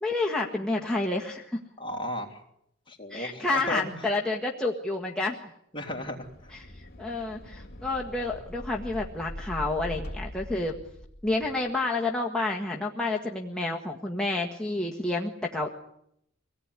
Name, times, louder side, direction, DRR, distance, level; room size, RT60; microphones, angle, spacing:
voice 1, 0.0-1.6 3.1-5.4 6.5-6.7 7.0-10.8 11.2-15.7, left 2 dB, 5° left, -2 dB, 1.7 m, -29 dB
voice 2, 1.8-2.4 2.9-3.9 5.7-6.3, left 1 dB, 25° left, 1 dB, 3.6 m, -34 dB
sound 1, 6.0-11.6, left 1 dB, 50° left, 3.4 m, -42 dB
25.0 x 18.0 x 9.7 m, 0.76 s
head